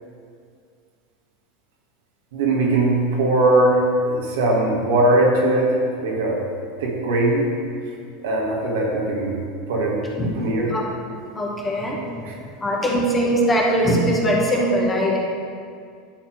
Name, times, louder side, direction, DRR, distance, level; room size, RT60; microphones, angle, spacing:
voice 1, 2.3-6.4 6.8-7.5 8.2-9.4 9.7-10.7 12.3-12.4, right 1 dB, 70° right, -2 dB, 1.7 m, -20 dB
voice 2, 11.3-12.1 12.6-15.2, equal, 20° left, -2 dB, 1.7 m, -21 dB
10.0 x 4.4 x 4.6 m, 2.2 s
hypercardioid pair, 85°, 0 cm